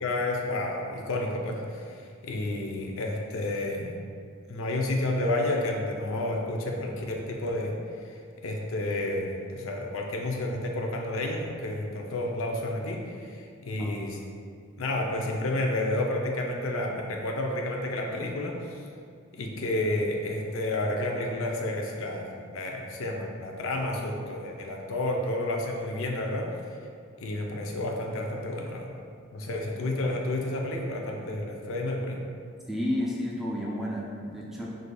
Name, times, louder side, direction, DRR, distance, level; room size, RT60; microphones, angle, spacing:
voice 1, 0.0-3.9 4.5-7.8 8.0-14.2 14.8-18.8 19.3-26.5 27.2-28.9 29.3-32.2, left 1 dB, 65° left, 1 dB, 0.5 m, -30 dB
voice 2, 32.7-34.7, left 1 dB, ahead, -5 dB, 0.4 m, -31 dB
6.0 x 2.6 x 2.2 m, 2.3 s
head